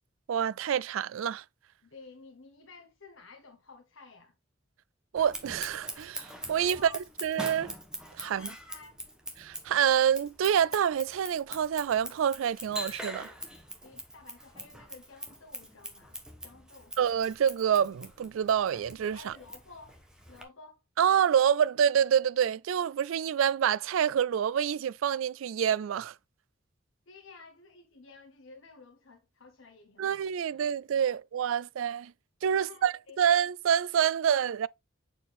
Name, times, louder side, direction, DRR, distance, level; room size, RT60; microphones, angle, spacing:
voice 1, 0.3-1.4 5.1-6.9 7.2-7.7 8.2-8.5 9.4-13.3 17.0-19.3 21.0-26.1 30.0-32.1 32.4-34.7, right 8 dB, 80° right, 0.3 m, -27 dB
voice 2, 1.8-4.3 6.7-7.0 8.2-9.0 13.8-16.2 16.4-16.9 19.1-20.0 20.3-20.8 27.1-30.2 30.5-30.6 31.0-31.2 32.5-33.2, left 3 dB, 70° left, 1.1 m, -52 dB
Scissors, 5.2-20.4, equal, 5° right, 1.2 m, -43 dB
7.3 x 4.5 x 3.5 m
head